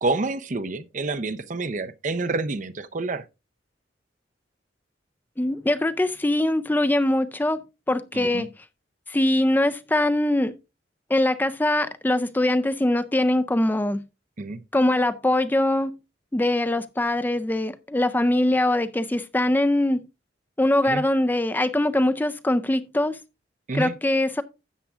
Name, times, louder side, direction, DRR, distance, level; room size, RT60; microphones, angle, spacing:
voice 1, 0.0-3.2 8.1-8.4 14.4-14.6 20.9-21.0 23.7-23.9, right 3 dB, 45° right, 0.6 m, -28 dB
voice 2, 5.4-7.6 7.9-8.5 9.1-10.5 11.1-14.0 14.7-16.0 16.3-20.0 20.6-23.2 23.7-24.4, left 1 dB, 10° left, 0.4 m, -22 dB
13.0 x 8.2 x 2.4 m
head